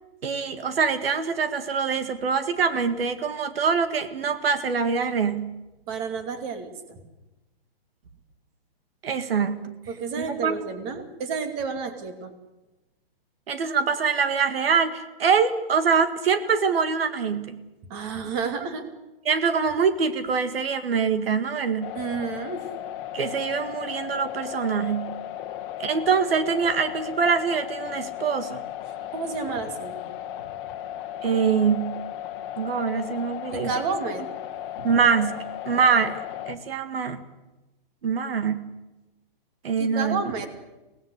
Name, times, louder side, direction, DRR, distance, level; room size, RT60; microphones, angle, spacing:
voice 1, 0.2-5.5 9.0-9.7 10.2-10.6 13.5-17.6 19.3-21.9 23.1-25.1 25.8-28.6 31.2-32.0 32.6-33.7 34.8-35.4 35.7-37.2 38.0-38.7 39.6-40.2, right 6 dB, 80° right, 11 dB, 2.1 m, -24 dB
voice 2, 5.9-7.0 9.9-12.3 17.9-18.8 21.9-22.7 29.1-30.0 33.5-34.2 34.8-35.0 39.8-40.5, right 5 dB, 25° right, 8 dB, 2.6 m, -31 dB
sound 1, 21.8-36.6, left 12 dB, 30° left, 1.7 m, -36 dB
24.5 x 18.5 x 8.3 m, 1.0 s
hypercardioid pair, 165°, 29 cm